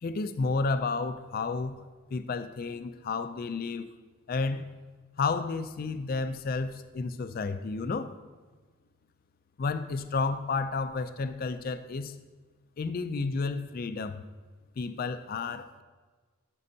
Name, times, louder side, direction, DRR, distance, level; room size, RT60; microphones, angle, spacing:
voice 1, 0.0-1.8 2.1-3.9 4.3-4.7 5.2-8.1 9.6-12.1 12.8-14.2 14.8-15.8, left 4 dB, 40° left, 11 dB, 0.3 m, -31 dB
12.5 x 5.3 x 2.7 m, 1.4 s
head